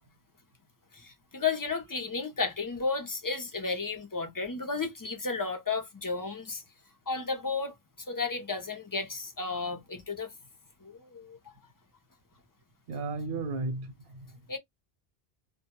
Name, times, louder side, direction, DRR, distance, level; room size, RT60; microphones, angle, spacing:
voice 1, 0.9-6.6 7.1-10.3 10.8-11.5 14.5-14.6, left 4 dB, 30° left, 0.4 m, -33 dB
voice 2, 12.9-14.3, right 3 dB, 70° right, 0.9 m, -34 dB
2.2 x 2.2 x 2.8 m
omnidirectional pair, 1.1 m